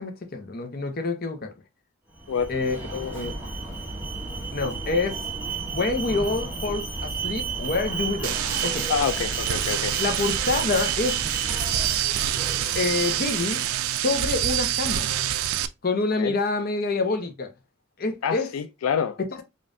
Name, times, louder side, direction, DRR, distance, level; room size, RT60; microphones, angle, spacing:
voice 1, 0.0-1.5 2.5-2.8 3.1-3.3 4.5-5.2 5.7-8.9 10.0-11.2 12.7-13.6 13.9-15.1 15.8-17.5 18.0-18.5 19.3-19.4, left 3 dB, 45° left, 0.7 m, -27 dB
Alarm, 2.2-14.2, right 4 dB, 10° right, 1.2 m, -33 dB
sound 1, 8.2-15.7, right 11 dB, 90° right, 0.4 m, -27 dB
voice 2, 8.9-9.9 16.2-16.3 18.2-19.2, left 7 dB, 85° left, 0.3 m, -27 dB
5.2 x 2.5 x 2.6 m
head